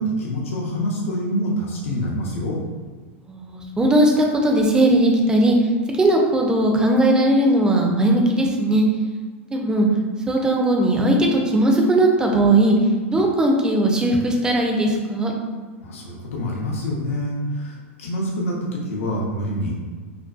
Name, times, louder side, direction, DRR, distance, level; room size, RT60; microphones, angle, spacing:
voice 1, 0.0-2.6 15.8-19.8, equal, 80° left, -3 dB, 0.5 m, -26 dB
voice 2, 3.3-5.6 6.0-8.8 9.5-9.9 10.3-12.8 13.1-15.3, right 1 dB, 10° right, 0 dB, 0.4 m, -18 dB
2.5 x 2.3 x 2.3 m, 1.4 s
hypercardioid pair, 120°, 7 cm